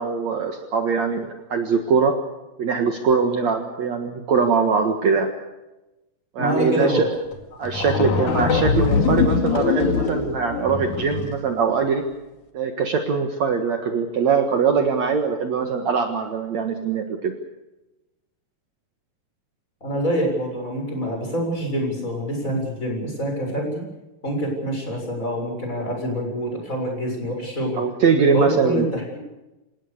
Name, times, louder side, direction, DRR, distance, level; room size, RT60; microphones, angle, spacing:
voice 1, 0.0-2.2 2.6-5.3 6.4-7.2 7.6-12.0 12.5-17.3 27.8-28.9, right 5 dB, 55° right, 5 dB, 2.6 m, -22 dB
voice 2, 6.4-7.0 19.8-23.8 24.2-27.8 28.3-29.2, equal, 20° left, 1 dB, 7.4 m, -26 dB
sound 1, 7.3-7.4 7.6-11.4, left 5 dB, 60° left, 3.5 m, -22 dB
28.5 x 18.0 x 6.7 m, 1.0 s
omnidirectional pair, 4.0 m